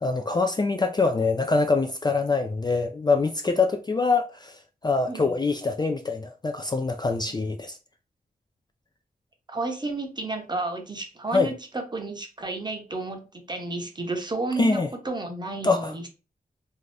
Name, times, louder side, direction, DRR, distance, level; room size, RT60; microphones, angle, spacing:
voice 1, 0.0-7.8 11.3-11.5 14.6-14.9 15.6-15.9, left 3 dB, 25° left, 0.3 m, -24 dB
voice 2, 9.5-16.1, right 3 dB, 25° right, 0.8 m, -32 dB
2.7 x 2.4 x 3.2 m
cardioid pair, 60°, 16 cm